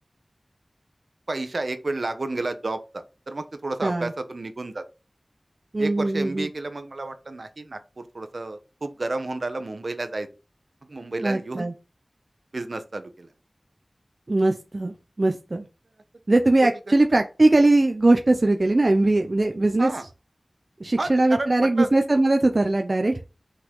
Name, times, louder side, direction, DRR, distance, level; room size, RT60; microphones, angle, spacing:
voice 1, 1.3-4.8 5.8-10.3 10.9-11.7 12.5-13.3 19.8-20.0 21.0-21.9, right 2 dB, 70° right, 1.1 m, -31 dB
voice 2, 3.8-4.1 5.7-6.5 11.2-11.7 14.3-15.6 16.3-19.9 20.8-23.2, right 2 dB, 55° right, 0.9 m, -20 dB
6.2 x 5.8 x 3.8 m
wide cardioid pair, 45°, 0 cm